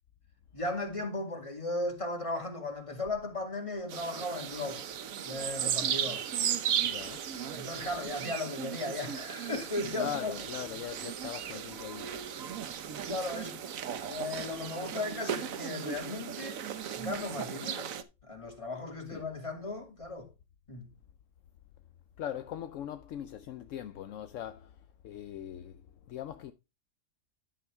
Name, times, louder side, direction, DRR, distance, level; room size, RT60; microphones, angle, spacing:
voice 1, 0.5-4.9 5.2-6.3 7.5-10.3 13.0-13.6 14.1-16.6 16.9-17.9 18.2-20.3 20.7-20.9, left 2 dB, 25° left, 2.4 m, -36 dB
sound 1, 3.9-18.0, right 9 dB, 85° right, 1.3 m, -36 dB
voice 2, 6.8-7.3 9.9-12.3 12.5-12.8 19.1-19.3 22.2-26.5, left 10 dB, 75° left, 1.0 m, -41 dB
11.5 x 6.7 x 3.5 m
omnidirectional pair, 1.4 m